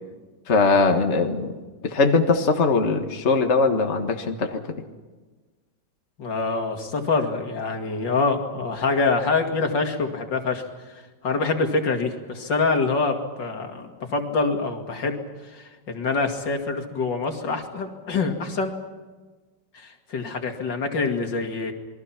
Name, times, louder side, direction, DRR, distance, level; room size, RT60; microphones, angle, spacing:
voice 1, 0.5-1.5 1.8-4.6, left 4 dB, 40° left, 4 dB, 1.8 m, -21 dB
voice 2, 6.2-10.7 10.9-15.2 15.4-18.7 19.7-21.7, left 3 dB, 75° left, 4 dB, 3.0 m, -25 dB
28.5 x 22.0 x 6.0 m, 1.3 s
omnidirectional pair, 2.0 m